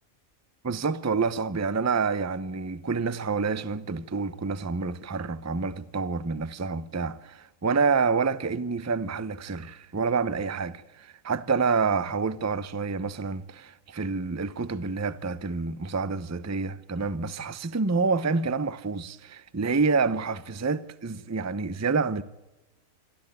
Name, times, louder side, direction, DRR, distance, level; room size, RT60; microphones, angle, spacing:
voice 1, 0.6-22.2, right 4 dB, 15° right, 0.6 m, -28 dB
27.0 x 13.0 x 9.1 m
omnidirectional pair, 1.5 m